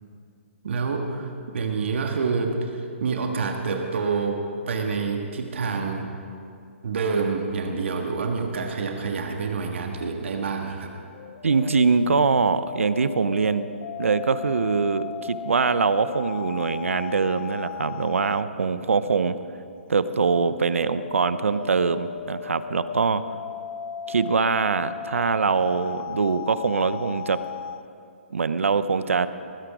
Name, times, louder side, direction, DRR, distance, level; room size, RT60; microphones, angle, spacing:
voice 1, 0.6-6.1 6.8-10.9, right 4 dB, 65° right, 3 dB, 1.6 m, -27 dB
sound 1, 11.1-18.5 20.5-27.8, left 8 dB, 50° left, 0.5 m, -36 dB
voice 2, 11.4-13.7 14.0-19.4 19.9-23.2 24.1-27.4 28.3-29.3, right 5 dB, 85° right, 13 dB, 0.7 m, -23 dB
20.0 x 10.0 x 5.0 m, 2.5 s
hypercardioid pair, 145°, 7 cm